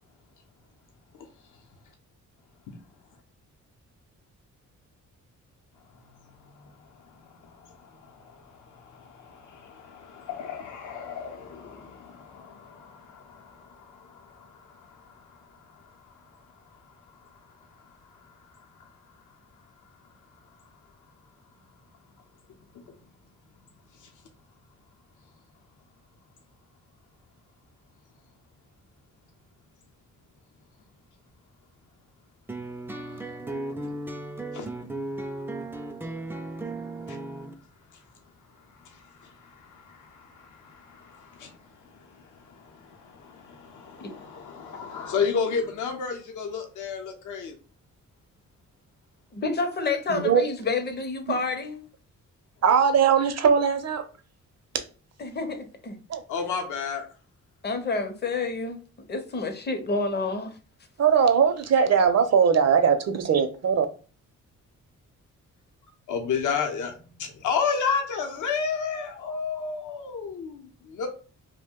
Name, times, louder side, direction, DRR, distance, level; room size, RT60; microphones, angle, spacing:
voice 1, 8.8-14.5 34.5-34.7 39.2-39.3 39.7-41.5 42.5-47.6 56.3-57.0 66.1-66.9 67.2-71.1, left 6 dB, 70° left, 0.7 m, -32 dB
sound 1, 32.5-37.5, right 2 dB, 5° right, 0.3 m, -35 dB
voice 2, 49.3-51.8 55.2-56.0 57.6-58.8 59.1-60.6, left 3 dB, 35° left, 0.6 m, -29 dB
voice 3, 50.1-50.5 52.6-54.0 56.1-56.2 61.0-63.9, right 6 dB, 55° right, 0.6 m, -20 dB
2.5 x 2.1 x 3.6 m
cardioid pair, 85°, 31 cm